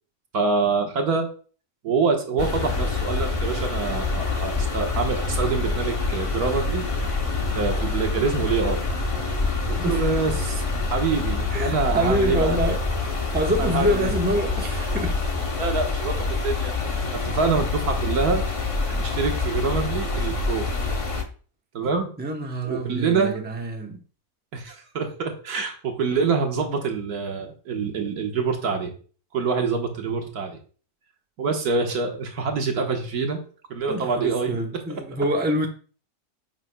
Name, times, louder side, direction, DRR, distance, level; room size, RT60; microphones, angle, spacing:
voice 1, 0.3-1.3 1.8-6.9 7.5-8.8 9.7-10.6 10.9-12.6 13.6-14.1 15.6-18.4 18.9-20.7 21.7-22.1 22.7-23.5 24.5-28.9 29.3-30.6 31.4-33.4 33.7-34.6 34.9-35.0, right 4 dB, 85° right, 1.8 m, -26 dB
sound 1, 2.4-21.2, left 3 dB, 30° left, 0.6 m, -26 dB
voice 2, 9.8-10.1 11.5-15.2 22.2-24.0 33.9-35.7, equal, 10° right, 0.7 m, -26 dB
9.3 x 6.1 x 2.2 m
omnidirectional pair, 1.6 m